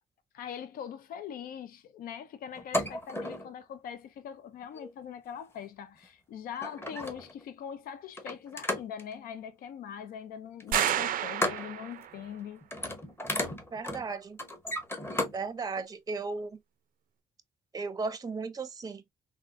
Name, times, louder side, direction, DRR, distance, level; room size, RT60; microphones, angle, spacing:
voice 1, 0.3-12.6, left 8 dB, 85° left, 0.4 m, -42 dB
sound 1, 2.5-3.5 4.6-4.9 6.0-6.1 6.5-7.4 8.1-9.1 10.6-11.7 12.0-12.3 12.6-15.4 15.8-15.9, left 1 dB, 15° left, 0.9 m, -34 dB
sound 2, 10.7-12.2, right 11 dB, 80° right, 0.4 m, -30 dB
voice 2, 13.7-14.4 15.3-16.6 17.7-19.0, right 4 dB, 25° right, 0.5 m, -35 dB
3.5 x 2.4 x 2.4 m
cardioid pair, 80°, 14 cm